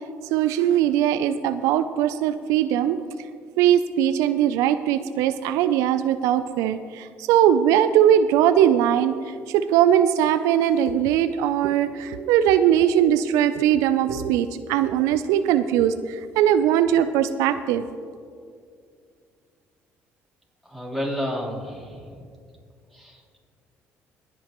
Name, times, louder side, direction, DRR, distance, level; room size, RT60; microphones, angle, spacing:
voice 1, 0.3-3.0 3.6-17.8, right 10 dB, 85° right, 12 dB, 0.4 m, -20 dB
voice 2, 20.7-22.0 22.9-23.2, equal, 5° left, -3 dB, 3.7 m, -30 dB
22.0 x 8.8 x 3.0 m, 2.3 s
supercardioid pair, 75°, 5 cm